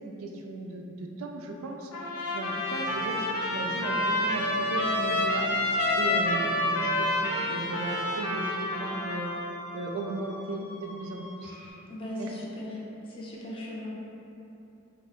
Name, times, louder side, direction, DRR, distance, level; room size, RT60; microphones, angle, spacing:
voice 1, 0.0-5.5 5.9-9.5 9.7-11.6 12.2-12.3, right 2 dB, 65° right, 1 dB, 0.3 m, -36 dB
Trumpet, 1.9-9.5, left 1 dB, 80° left, 0.5 m, -28 dB
sound 1, 2.7-9.4, left 1 dB, 85° right, 0.9 m, -47 dB
sound 2, 5.6-11.7, left 1 dB, 30° right, 1.1 m, -46 dB
voice 2, 11.9-12.8 13.0-13.9, left 1 dB, 25° left, -6 dB, 0.5 m, -37 dB
2.8 x 2.3 x 3.9 m, 3.0 s
head